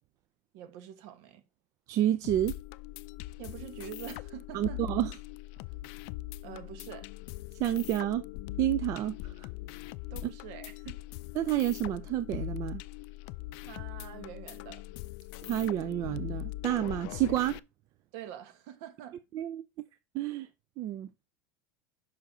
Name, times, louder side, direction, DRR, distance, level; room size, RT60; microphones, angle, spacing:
voice 1, 0.5-1.4 3.4-4.8 6.4-7.1 10.1-11.0 13.6-14.8 18.1-19.2, right 11 dB, 60° right, 1.4 m, -45 dB
voice 2, 1.9-2.5 4.5-5.1 7.6-8.2 8.6-9.5 10.2-10.3 11.4-12.8 15.4-17.6 19.3-19.6 20.1-20.5 20.8-21.1, right 13 dB, 40° right, 0.5 m, -29 dB
sound 1, 2.2-17.6, left 17 dB, 60° left, 0.4 m, -41 dB
6.3 x 5.7 x 3.8 m
supercardioid pair, 140°, 8 cm